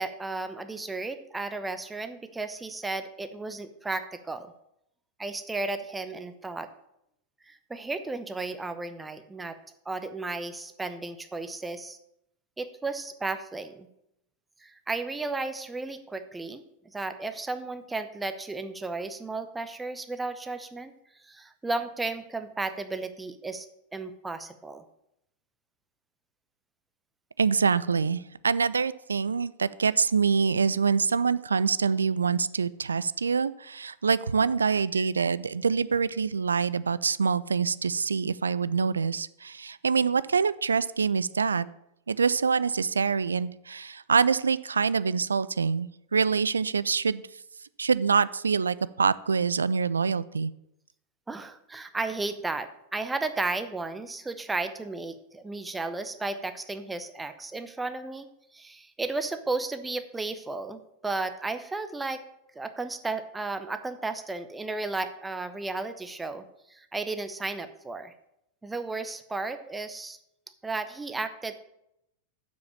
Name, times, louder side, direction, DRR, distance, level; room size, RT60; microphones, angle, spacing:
voice 1, 0.0-4.5 5.2-6.7 7.5-9.6 9.9-12.0 12.6-13.9 14.6-20.9 21.2-23.7 23.9-24.8 51.3-58.3 58.5-62.2 62.5-68.1 68.6-70.2 70.6-71.5, right 3 dB, 10° right, 9 dB, 0.8 m, -34 dB
voice 2, 27.4-41.7 42.1-47.2 47.8-50.5, right 5 dB, 75° right, 18 dB, 0.3 m, -25 dB
7.3 x 6.2 x 7.1 m, 0.81 s
figure-of-eight pair, 90°, 0 cm